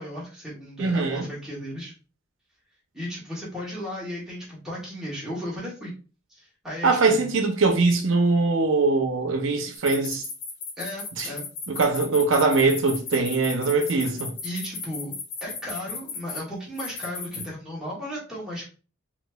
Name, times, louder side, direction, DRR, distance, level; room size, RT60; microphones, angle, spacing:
voice 1, 0.0-1.9 2.9-5.9 6.3-7.2 10.8-11.4 14.4-15.1 15.4-18.7, equal, 5° right, 1.5 m, -35 dB
voice 2, 0.8-1.3 6.8-10.2 11.2-11.3 11.7-14.3, right 3 dB, 85° right, 0.7 m, -22 dB
sound 1, 9.8-16.4 16.8-17.4, left 4 dB, 60° left, 0.8 m, -35 dB
4.3 x 2.8 x 2.3 m
head